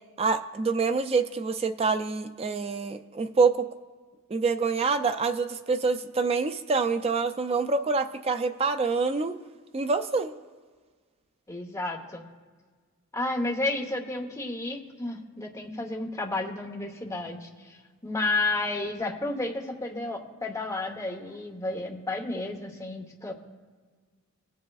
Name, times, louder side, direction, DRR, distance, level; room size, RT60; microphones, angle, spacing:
voice 1, 0.2-3.7 4.3-9.4 9.7-10.3, right 4 dB, 25° right, 8 dB, 0.4 m, -26 dB
voice 2, 11.5-12.2 13.1-23.3, left 2 dB, 15° left, 1 dB, 0.9 m, -32 dB
20.0 x 7.5 x 2.4 m, 1.5 s
head